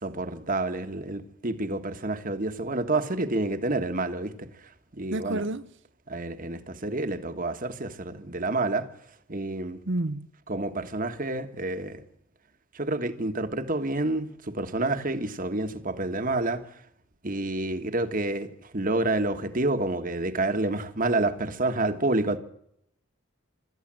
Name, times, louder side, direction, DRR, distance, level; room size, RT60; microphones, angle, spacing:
voice 1, 0.0-4.5 4.9-5.4 6.1-8.9 9.3-9.8 10.5-12.0 12.7-16.6 17.2-22.4, right 2 dB, 40° right, 1.5 m, -28 dB
voice 2, 5.1-5.7 9.9-10.3, right 2 dB, 55° right, 0.9 m, -29 dB
26.0 x 13.5 x 7.6 m
head